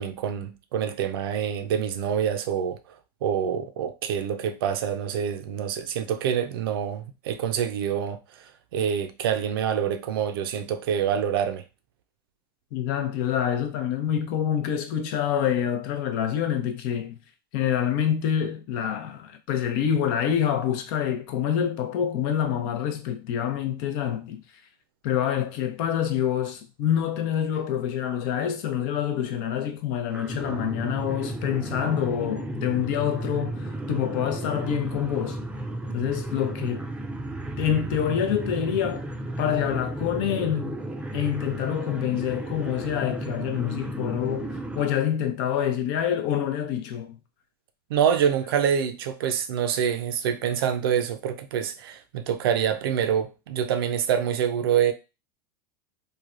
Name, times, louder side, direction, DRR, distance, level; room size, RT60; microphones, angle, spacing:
voice 1, 0.0-3.0 3.2-8.4 8.7-11.6 47.9-54.9, right 8 dB, 80° right, 0.5 m, -26 dB
voice 2, 12.7-17.2 17.5-24.4 25.0-35.4 35.9-36.9 37.6-39.1 39.4-40.8 41.1-47.2, left 9 dB, 60° left, 0.6 m, -26 dB
sound 1, 30.1-44.8, right 1 dB, 10° right, 0.4 m, -33 dB
3.2 x 2.2 x 2.4 m
hypercardioid pair, 105°, 12 cm